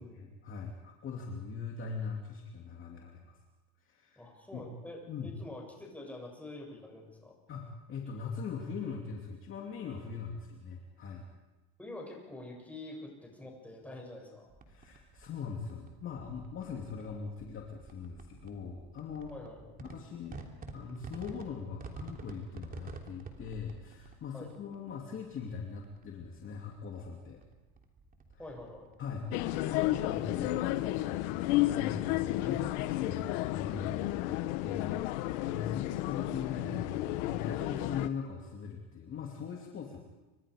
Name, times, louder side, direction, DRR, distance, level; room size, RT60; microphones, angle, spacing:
voice 1, 0.4-3.4 3.8-4.3 4.5-4.7 5.1-5.3 7.5-11.2 14.7-19.3 19.8-27.4 29.0-40.0, left 6 dB, 35° left, 0 dB, 2.8 m, -41 dB
voice 2, 4.2-7.3 11.8-14.5 19.3-19.8 24.3-24.5 28.4-28.9, left 2 dB, 5° left, -1 dB, 7.6 m, -46 dB
sound 1, 14.5-32.6, right 3 dB, 25° right, 3.3 m, -51 dB
sound 2, 29.3-38.1, left 17 dB, 75° left, 1.3 m, -32 dB
29.5 x 26.0 x 5.1 m, 1.1 s
supercardioid pair, 135°, 35 cm